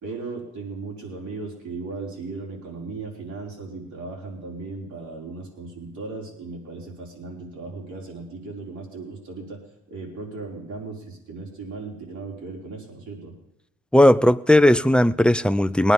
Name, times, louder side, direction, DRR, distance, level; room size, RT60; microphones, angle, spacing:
voice 1, 0.0-9.6 9.9-13.3, right 3 dB, 70° right, -1 dB, 4.6 m, -36 dB
voice 2, 13.9-15.9, left 1 dB, 5° left, 13 dB, 0.5 m, -17 dB
19.5 x 9.8 x 5.4 m, 0.78 s
cardioid pair, 90°, 30 cm